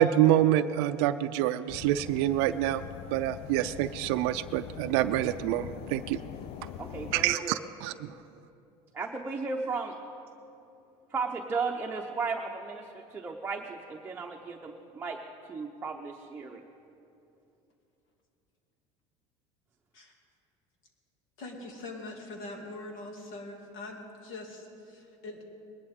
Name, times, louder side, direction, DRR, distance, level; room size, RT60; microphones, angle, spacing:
voice 1, 0.0-2.8 3.1-6.2 7.1-8.1, right 12 dB, 80° right, 10 dB, 0.4 m, -26 dB
sound 1, 1.7-7.4, left 10 dB, 45° left, 0.4 m, -43 dB
voice 2, 6.8-7.6 8.9-10.0 11.1-15.2 15.5-16.6, right 4 dB, 15° right, 0 dB, 0.7 m, -35 dB
voice 3, 21.4-25.4, left 2 dB, 70° left, 1 dB, 2.4 m, -43 dB
21.0 x 11.5 x 3.6 m, 2.7 s
cardioid pair, 130°, 14 cm